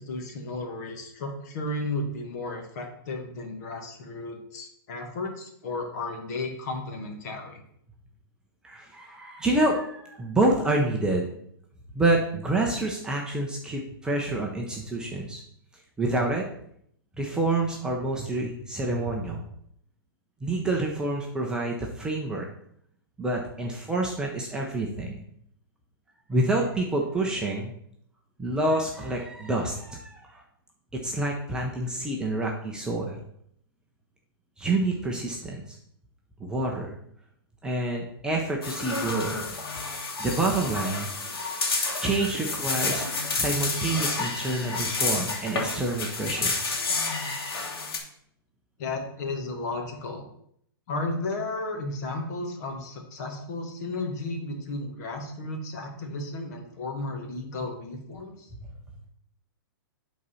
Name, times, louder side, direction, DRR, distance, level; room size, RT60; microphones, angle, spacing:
voice 1, 0.0-7.6 48.8-50.2 50.9-58.5, left 2 dB, 45° left, 3 dB, 1.7 m, -34 dB
voice 2, 8.6-11.3 11.9-15.4 16.0-16.5 17.2-19.4 20.4-22.5 23.2-25.2 26.3-27.7 28.4-30.4 30.9-33.2 34.6-35.8 36.4-37.0 37.6-39.4 40.2-41.1 42.0-43.0 43.3-46.5, right 2 dB, 5° right, -1 dB, 0.7 m, -27 dB
sound 1, 38.6-48.0, left 3 dB, 75° left, 2.3 m, -30 dB
8.5 x 4.0 x 5.5 m, 0.70 s
hypercardioid pair, 160°, 13 cm